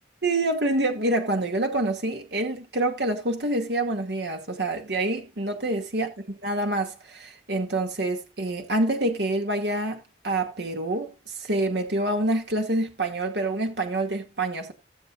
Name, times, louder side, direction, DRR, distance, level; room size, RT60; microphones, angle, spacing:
voice 1, 0.2-6.1 6.4-14.7, right 2 dB, 70° right, 2.3 m, -27 dB
17.5 x 8.0 x 2.5 m
head